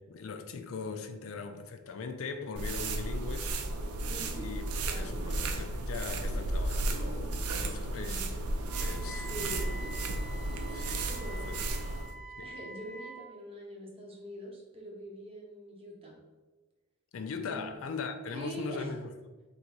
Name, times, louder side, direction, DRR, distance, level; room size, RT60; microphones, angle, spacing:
voice 1, 0.1-3.5 4.4-4.6 5.0-8.2 8.8-9.6 10.7-11.1 11.4-11.7 12.4-12.6 17.1-19.1, left 4 dB, 65° left, 0.4 m, -40 dB
sound 1, 2.6-12.1, right 2 dB, 90° right, 0.5 m, -34 dB
voice 2, 4.1-4.5 4.9-5.2 7.9-8.3 9.1-9.8 11.0-11.9 12.4-16.2 17.5-18.0 18.3-19.0, equal, 25° right, 0.8 m, -44 dB
Wind instrument woodwind instrument, 8.7-13.2, right 2 dB, ahead, 0.5 m, -46 dB
3.8 x 2.7 x 4.5 m
head